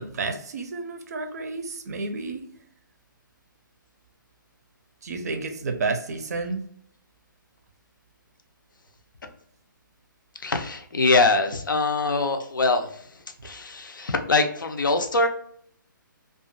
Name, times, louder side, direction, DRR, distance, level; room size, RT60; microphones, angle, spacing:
voice 1, 0.0-2.4 5.0-6.6, right 3 dB, 50° right, 7 dB, 0.5 m, -31 dB
voice 2, 10.4-13.0 13.4-15.3, left 3 dB, 70° left, 6 dB, 0.5 m, -23 dB
2.4 x 2.3 x 2.5 m, 0.65 s
figure-of-eight pair, 135°, 11 cm